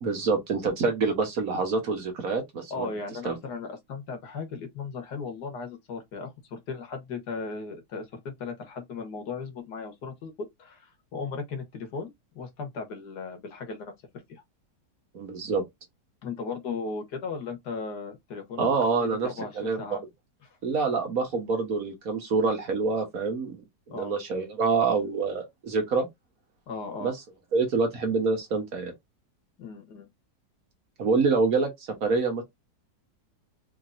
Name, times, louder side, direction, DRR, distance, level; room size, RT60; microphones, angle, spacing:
voice 1, 0.0-2.9 3.3-3.4 15.1-15.6 18.6-19.3 19.6-20.0 20.6-23.6 23.9-26.1 27.0-27.1 27.5-28.9 31.0-32.4, right 4 dB, 60° right, 1.7 m, -26 dB
voice 2, 2.7-13.9 14.3-14.4 16.2-18.7 19.0-20.0 20.4-20.6 23.9-24.1 26.7-27.1 29.6-30.1, left 4 dB, 80° left, 1.8 m, -37 dB
4.5 x 3.1 x 2.6 m
omnidirectional pair, 1.8 m